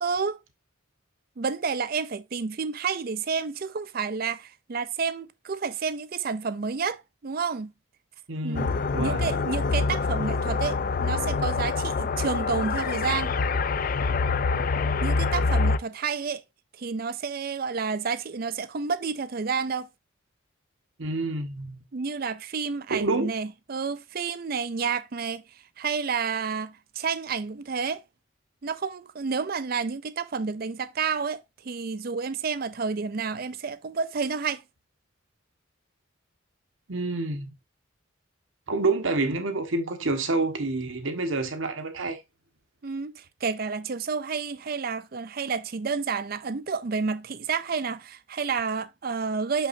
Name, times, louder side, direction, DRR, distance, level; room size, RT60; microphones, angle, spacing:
voice 1, 0.0-0.4 1.4-7.7 8.4-13.4 15.0-16.4 16.7-19.9 21.9-25.4 25.8-28.0 28.6-34.6 42.8-49.7, right 5 dB, 45° right, 0.4 m, -30 dB
voice 2, 8.3-9.3 21.0-21.8 22.9-23.3 36.9-37.5 38.7-42.2, right 3 dB, 70° right, 1.2 m, -28 dB
sound 1, 8.5-15.8, left 4 dB, 40° left, 0.4 m, -26 dB
6.2 x 5.7 x 2.6 m
head